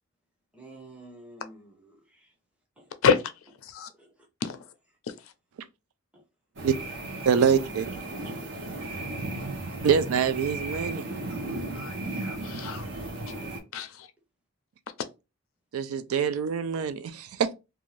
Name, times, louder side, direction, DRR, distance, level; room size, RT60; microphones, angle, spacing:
voice 1, 0.5-2.3 2.8-2.9 4.0-4.3 6.1-6.2, right 2 dB, 5° right, 0.6 m, -50 dB
sound 1, 6.6-13.6, right 2 dB, 55° right, 0.8 m, -35 dB
voice 2, 7.3-7.9 9.8-11.0 15.7-17.5, right 7 dB, 90° right, 0.4 m, -25 dB
voice 3, 11.7-12.8 13.3-13.4 13.7-14.1, left 6 dB, 75° left, 0.4 m, -27 dB
2.5 x 2.3 x 3.1 m
head